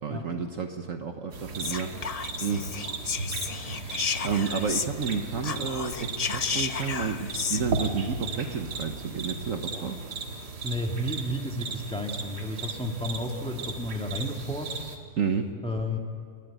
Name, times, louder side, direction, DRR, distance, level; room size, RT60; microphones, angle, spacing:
voice 1, 0.0-2.1 2.4-2.7 4.2-10.0 15.2-15.5, right 5 dB, 55° right, 5 dB, 1.4 m, -31 dB
sound 1, 1.3-15.0, right 4 dB, 80° right, 2.3 m, -36 dB
Whispering, 1.6-5.1 5.4-7.6, left 5 dB, 80° left, 0.3 m, -32 dB
voice 2, 10.6-14.7 15.6-16.0, left 1 dB, 5° left, 2 dB, 1.9 m, -32 dB
29.5 x 12.5 x 9.2 m, 2.2 s
omnidirectional pair, 1.7 m